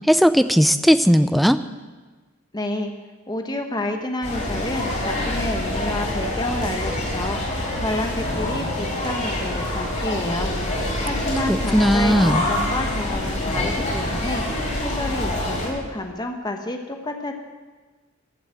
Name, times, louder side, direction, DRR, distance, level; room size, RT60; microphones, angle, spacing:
voice 1, 0.1-1.6 11.5-12.4, equal, ahead, 11 dB, 0.5 m, -17 dB
voice 2, 2.5-2.9 3.3-7.4 7.8-10.5 11.0-14.4 14.8-17.3, left 1 dB, 20° left, 4 dB, 1.2 m, -29 dB
sound 1, 4.2-15.7, left 1 dB, 35° left, 4.5 m, -26 dB
15.0 x 8.2 x 9.1 m, 1.3 s
head